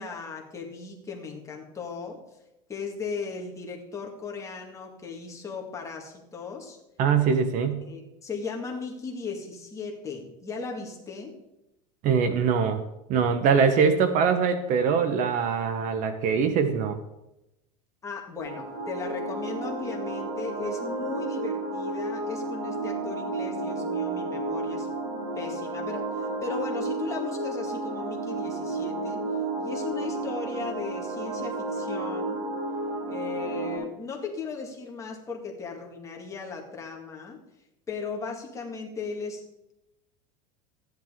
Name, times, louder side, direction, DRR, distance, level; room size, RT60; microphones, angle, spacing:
voice 1, 0.0-2.2 2.7-6.8 7.9-11.4 18.0-24.9 25.4-29.3 29.6-32.5 33.1-37.4 37.9-39.7, left 4 dB, 15° left, 0 dB, 2.0 m, -37 dB
voice 2, 7.0-7.8 12.0-12.8 13.1-17.0, right 6 dB, 40° right, 9 dB, 1.0 m, -23 dB
sound 1, 18.4-33.8, right 2 dB, 85° right, 4.9 m, -32 dB
14.0 x 10.5 x 3.7 m, 0.90 s
supercardioid pair, 150°, 20 cm